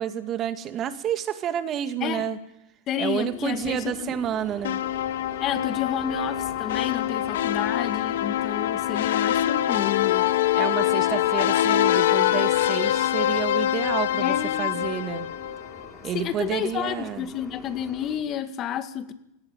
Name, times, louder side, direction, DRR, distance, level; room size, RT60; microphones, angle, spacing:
voice 1, 0.0-2.4 3.0-4.8 10.5-15.3 16.0-17.3, right 9 dB, 40° right, 9 dB, 2.2 m, -29 dB
voice 2, 2.9-4.2 5.4-10.3 14.2-14.7 16.1-19.1, left 9 dB, 45° left, 10 dB, 2.0 m, -30 dB
sound 1, 3.2-18.2, left 2 dB, 10° left, 5.0 m, -43 dB
sound 2, 4.6-15.9, left 12 dB, 75° left, 1.1 m, -24 dB
18.0 x 16.5 x 9.1 m, 0.82 s
hypercardioid pair, 90°, 0 cm